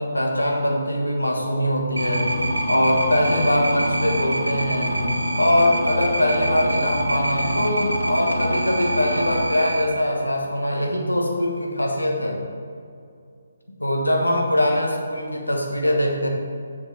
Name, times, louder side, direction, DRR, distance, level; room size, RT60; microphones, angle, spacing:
voice 1, 0.0-2.3 2.7-5.1 5.4-12.4 13.8-16.3, left 1 dB, 80° left, 1 dB, 1.4 m, -22 dB
sound 1, 2.0-9.8, right 1 dB, 85° right, 1.0 m, -25 dB
7.1 x 6.1 x 4.7 m, 2.3 s
figure-of-eight pair, 140°, 0 cm